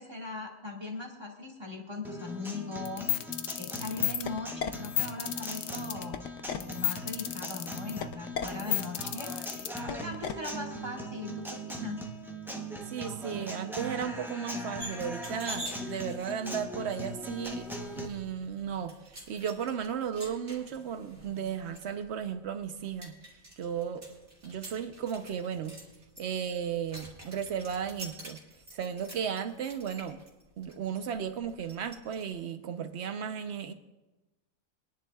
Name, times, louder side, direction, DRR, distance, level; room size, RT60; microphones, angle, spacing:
voice 1, 0.0-3.1 3.6-6.2 6.6-12.0, left 3 dB, 20° right, -1 dB, 1.9 m, -40 dB
Guitar, 2.0-18.1, equal, ahead, 0.7 m, -40 dB
sound 1, 2.9-10.3, left 11 dB, 70° left, 0.9 m, -32 dB
voice 2, 12.9-17.7 18.0-18.9 19.3-23.2 23.6-24.0 24.4-25.8 26.2-28.4 28.7-30.2 30.6-33.7, right 8 dB, 60° right, 9 dB, 1.0 m, -35 dB
sound 2, 14.8-32.2, right 1 dB, 40° right, 2.4 m, -48 dB
23.5 x 10.5 x 2.4 m, 1.0 s
omnidirectional pair, 1.4 m